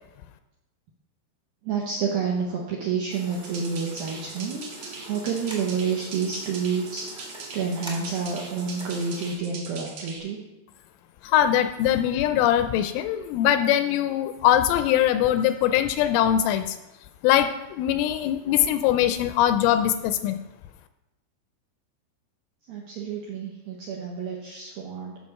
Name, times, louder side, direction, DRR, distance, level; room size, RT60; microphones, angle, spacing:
voice 1, 1.6-7.3 7.5-10.4 22.7-25.2, right 5 dB, 75° right, -2 dB, 2.2 m, -29 dB
sound 1, 3.1-9.3, right 1 dB, 5° right, 0.6 m, -43 dB
sound 2, 3.3-10.2, right 4 dB, 60° right, 2.2 m, -41 dB
voice 2, 11.2-16.8 17.2-20.4, left 11 dB, 85° left, 9 dB, 2.9 m, -22 dB
14.0 x 6.1 x 5.4 m, 1.0 s
omnidirectional pair, 5.9 m